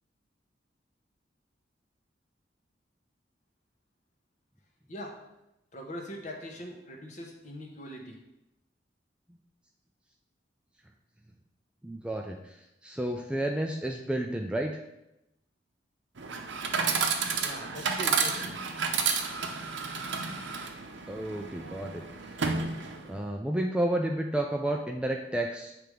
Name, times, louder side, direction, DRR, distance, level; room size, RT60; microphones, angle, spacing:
voice 1, 5.7-8.2 17.4-18.6, equal, 40° left, 1 dB, 1.0 m, -41 dB
voice 2, 11.8-14.8 21.1-22.0 23.1-25.7, right 1 dB, 5° right, 2 dB, 0.3 m, -31 dB
Chatter / Coin (dropping), 16.2-23.2, right 5 dB, 80° right, 0.7 m, -31 dB
7.7 x 3.4 x 4.9 m, 0.90 s
head